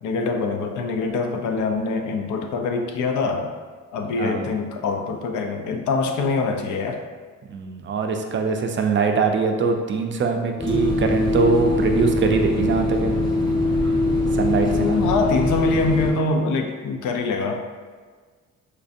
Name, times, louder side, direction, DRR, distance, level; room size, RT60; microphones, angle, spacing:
voice 1, 0.0-3.5 3.9-7.0 14.6-17.6, left 3 dB, 80° left, 4 dB, 0.5 m, -24 dB
voice 2, 4.2-4.5 7.5-13.2 14.3-15.0, right 5 dB, 40° right, 4 dB, 0.4 m, -22 dB
sound 1, 10.6-16.1, left 2 dB, 15° left, 1.0 m, -22 dB
4.4 x 2.5 x 2.4 m, 1.5 s
cardioid pair, 90°, 30 cm